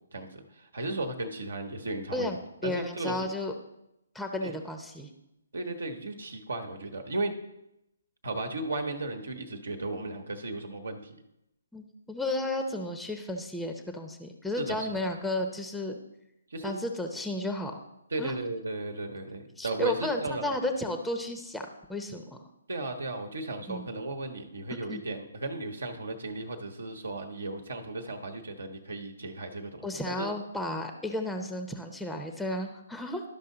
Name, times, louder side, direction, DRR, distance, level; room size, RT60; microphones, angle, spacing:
voice 1, 0.1-2.3 2.6-3.3 4.4-4.5 5.5-7.4 8.2-11.1 14.6-14.9 16.5-16.7 18.1-20.6 22.7-30.3, right 2 dB, 75° right, 6 dB, 1.1 m, -35 dB
voice 2, 2.6-3.5 4.1-5.1 11.7-16.0 16.6-17.8 18.2-18.3 19.6-22.3 23.7-23.9 24.9-25.0 29.8-33.2, left 1 dB, ahead, 4 dB, 0.6 m, -33 dB
12.0 x 5.4 x 3.8 m, 0.86 s
figure-of-eight pair, 140°, 0 cm